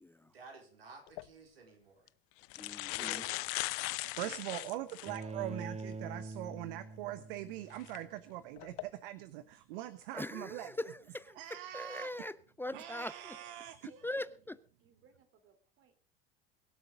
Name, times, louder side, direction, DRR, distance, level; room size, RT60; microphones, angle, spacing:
voice 1, 0.3-2.1 2.8-3.4 4.2-4.7, right 3 dB, 85° right, 2 dB, 4.1 m, -54 dB
sound 1, 1.1-1.3 2.1-2.2 2.4-5.2 5.8-5.9 7.7-8.0 8.6-8.8, left 24 dB, 60° left, 0.6 m, -38 dB
voice 2, 2.6-3.2 10.1-11.4 11.7-13.1 14.0-14.6, left 1 dB, 5° left, 15 dB, 0.6 m, -41 dB
voice 3, 4.0-10.7 11.3-12.1 12.7-13.8, right 14 dB, 65° right, 13 dB, 1.1 m, -42 dB
Bowed string instrument, 5.0-8.1, right 3 dB, 20° right, 1.1 m, -44 dB
voice 4, 5.0-5.4 13.3-13.5 13.9-16.0, right 4 dB, 45° right, 9 dB, 3.4 m, -61 dB
23.0 x 8.0 x 5.2 m, 0.41 s
hypercardioid pair, 75°, 29 cm